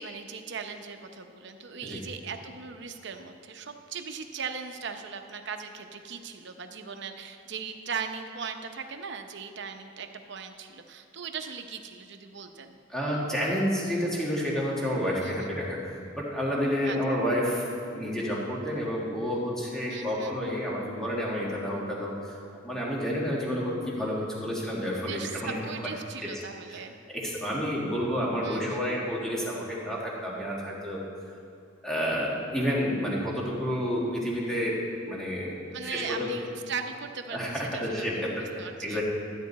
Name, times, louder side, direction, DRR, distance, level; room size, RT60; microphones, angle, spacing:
voice 1, 0.0-12.8 15.2-15.5 16.8-17.2 19.9-20.4 24.9-26.9 28.4-28.8 35.7-38.2 38.6-39.0, right 6 dB, 60° right, 6 dB, 0.8 m, -39 dB
voice 2, 12.9-17.7 17.9-22.4 22.6-25.6 26.2-26.3 26.7-26.8 27.1-31.0 31.8-36.3 37.3-39.0, equal, 5° left, -5 dB, 1.8 m, -30 dB
13.0 x 9.4 x 4.1 m, 2.7 s
head